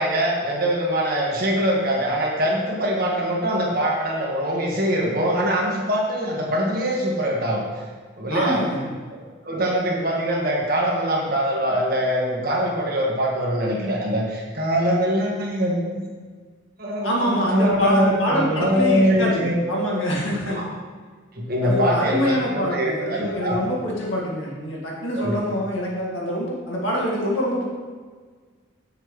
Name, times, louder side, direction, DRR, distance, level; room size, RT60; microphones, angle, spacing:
voice 1, 0.0-7.6 8.2-8.6 9.1-9.2 9.4-16.0 16.8-19.8 20.5-20.6 21.3-23.6 25.2-25.4, equal, 45° right, -2 dB, 1.6 m, -23 dB
voice 2, 8.3-8.9 17.0-20.7 21.6-27.7, equal, 75° left, -3 dB, 2.0 m, -25 dB
7.7 x 7.0 x 3.2 m, 1.5 s
head